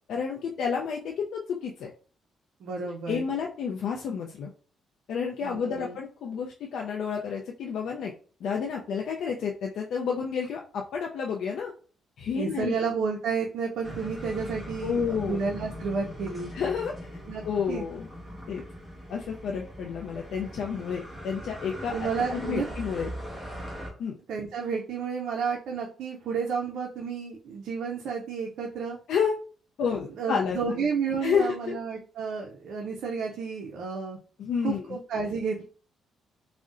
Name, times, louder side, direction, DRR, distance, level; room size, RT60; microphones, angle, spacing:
voice 1, 0.1-1.9 3.1-4.5 5.1-8.1 8.4-11.7 12.2-12.9 14.8-15.4 16.5-16.9 17.4-18.1 18.5-18.6 19.1-23.1 24.0-24.2 29.1-29.4 29.8-30.6 31.2-31.8 34.4-34.9, left 6 dB, 75° left, 0 dB, 0.4 m, -30 dB
voice 2, 2.6-3.3 5.4-6.0 12.3-16.5 17.3-17.4 17.7-17.8 21.9-22.7 24.3-29.0 30.2-34.2 34.6-35.6, right 5 dB, 75° right, 0 dB, 0.4 m, -31 dB
sound 1, 13.8-23.9, equal, 10° right, 1.2 m, -40 dB
3.6 x 2.1 x 2.4 m, 0.40 s
cardioid pair, 90°, 0 cm